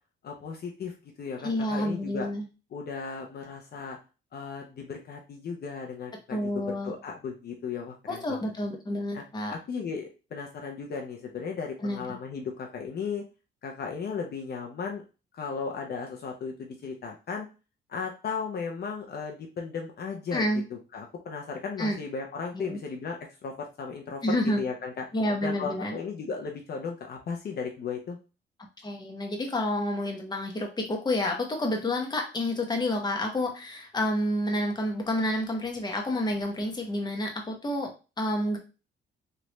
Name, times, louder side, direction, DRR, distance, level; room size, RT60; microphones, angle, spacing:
voice 1, 0.2-2.3 2.7-4.0 4.3-8.4 9.1-9.2 9.5-13.2 13.6-15.0 15.3-17.5 17.9-20.4 20.7-25.0 25.4-28.2, left 5 dB, 55° left, 2 dB, 0.7 m, -36 dB
voice 2, 1.4-2.4 6.3-6.9 8.1-9.5 11.8-12.0 20.3-20.6 21.8-22.0 22.5-22.8 24.2-24.6 25.1-26.0 28.8-38.6, left 1 dB, 20° left, 2 dB, 0.9 m, -29 dB
3.3 x 2.5 x 3.0 m, 0.32 s
cardioid pair, 90°, 20 cm